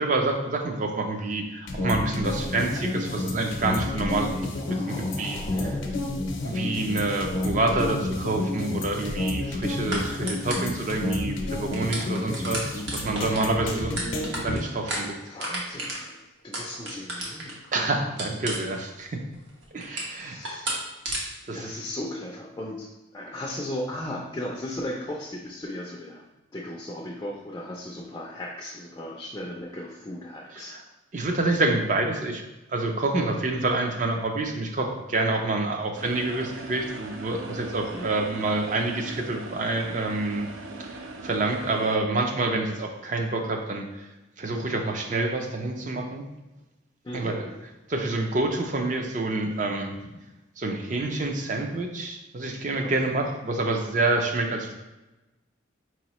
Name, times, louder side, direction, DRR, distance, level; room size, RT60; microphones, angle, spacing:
voice 1, 0.0-5.7 6.4-14.0 14.3-15.1 17.7-19.2 19.7-20.4 21.5-21.7 30.6-30.8 31.1-32.4 32.7-40.5 40.8-44.1 44.4-46.2 47.1-47.5 47.9-49.9 50.6-54.7, right 2 dB, 40° right, 3 dB, 0.5 m, -27 dB
sound 1, 1.7-14.6, left 2 dB, 75° left, 0.6 m, -30 dB
voice 2, 4.7-6.2 13.9-14.0 14.9-15.0 15.3-17.6 20.0-20.7 21.5-26.3 26.5-30.8 37.9-38.2 47.0-47.6 52.8-53.2, left 1 dB, 20° left, -2 dB, 0.4 m, -37 dB
sound 2, 9.9-10.0 10.3-10.8 11.3-11.4 11.6-17.7 18.2-19.0 19.3-20.2 20.4-20.8 21.0-21.2, right 1 dB, 65° right, 1.0 m, -32 dB
sound 3, 35.9-42.0, right 2 dB, 90° right, 0.5 m, -40 dB
4.5 x 3.0 x 2.9 m, 1.0 s
head